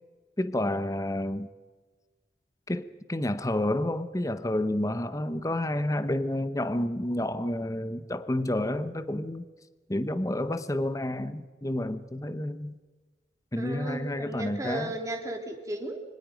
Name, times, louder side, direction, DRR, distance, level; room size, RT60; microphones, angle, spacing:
voice 1, 0.4-1.5 2.7-9.4 9.9-12.8 13.5-14.9, left 1 dB, 20° left, 12 dB, 0.9 m, -30 dB
voice 2, 13.6-16.0, right 1 dB, 20° right, 3 dB, 3.2 m, -35 dB
25.5 x 24.5 x 5.2 m, 1.3 s
head